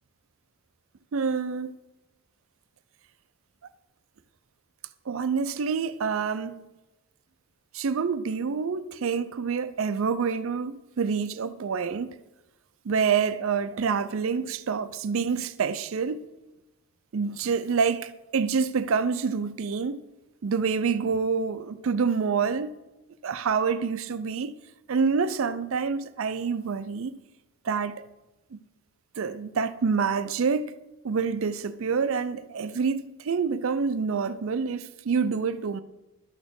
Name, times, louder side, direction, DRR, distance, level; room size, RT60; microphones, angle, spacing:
voice 1, 1.1-1.7 5.1-6.7 7.7-12.2 12.8-16.2 17.1-20.0 20.4-22.7 23.2-24.5 24.9-27.1 27.6-28.0 28.5-28.6 29.2-30.7 31.0-35.8, right 5 dB, 65° right, 0.4 m, -27 dB
12.5 x 4.2 x 6.9 m
head